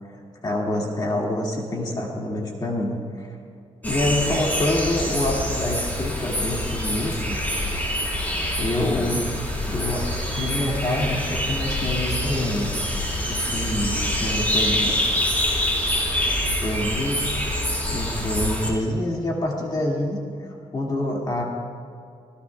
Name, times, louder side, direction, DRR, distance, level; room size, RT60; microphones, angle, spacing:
voice 1, 0.1-3.3 3.8-7.4 8.6-9.3 9.7-10.0 10.4-12.7 13.3-15.0 16.6-17.2 17.9-20.2 20.7-21.4, left 1 dB, 35° left, -2 dB, 2.2 m, -26 dB
sound 1, 3.8-18.7, left 1 dB, 15° left, 3.7 m, -25 dB
25.5 x 17.5 x 2.3 m, 2.4 s
wide cardioid pair, 145°, 12 cm